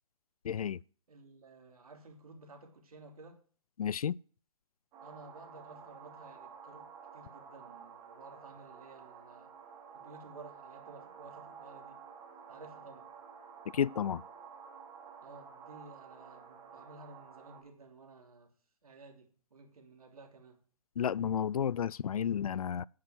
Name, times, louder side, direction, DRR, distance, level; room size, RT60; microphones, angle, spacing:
voice 1, 0.4-0.8 3.8-4.2 13.7-14.2 21.0-22.8, left 8 dB, 80° left, 0.4 m, -32 dB
voice 2, 1.1-3.4 5.0-9.5 9.9-12.0 12.5-13.1 15.2-18.5 18.8-20.6, right 3 dB, 80° right, 3.1 m, -54 dB
sound 1, 4.9-17.6, right 6 dB, 20° right, 3.0 m, -51 dB
9.6 x 6.0 x 8.0 m
hypercardioid pair, 150°, 18 cm